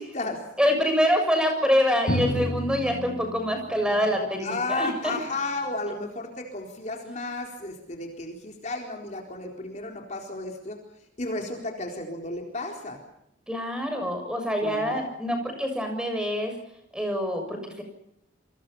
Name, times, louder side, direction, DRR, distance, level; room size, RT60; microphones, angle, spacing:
voice 1, 0.0-0.4 4.4-10.8 11.2-13.0 14.6-15.0, left 2 dB, 35° left, 2 dB, 4.1 m, -33 dB
voice 2, 0.6-5.1 13.5-16.6 16.9-17.8, equal, 5° right, 5 dB, 7.0 m, -25 dB
Drum, 2.1-5.6, equal, 55° left, 2.5 m, -32 dB
29.5 x 25.5 x 5.6 m, 0.79 s
head